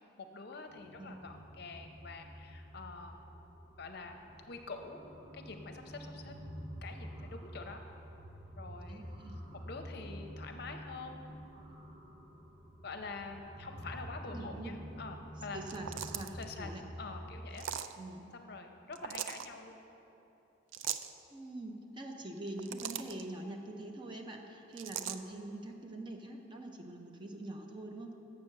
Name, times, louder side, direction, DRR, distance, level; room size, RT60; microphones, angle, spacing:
voice 1, 0.2-3.4 3.8-5.0 5.3-6.3 6.8-7.8 8.5-9.1 9.5-11.2 12.8-15.6 16.3-16.7 17.0-17.7 18.3-19.8, left 4 dB, 55° left, 5 dB, 0.6 m, -46 dB
sound 1, 0.7-17.3, equal, 40° right, 1.9 m, -48 dB
voice 2, 8.9-9.4 14.3-14.8 15.5-16.8 18.0-18.2 21.3-28.1, right 1 dB, 25° right, 3 dB, 0.5 m, -44 dB
sound 2, 15.6-16.4 17.5-17.9 18.9-19.5 20.7-21.1 22.4-23.2 24.8-25.2, right 10 dB, 75° right, 0.3 m, -39 dB
7.3 x 6.0 x 6.5 m, 3.0 s
head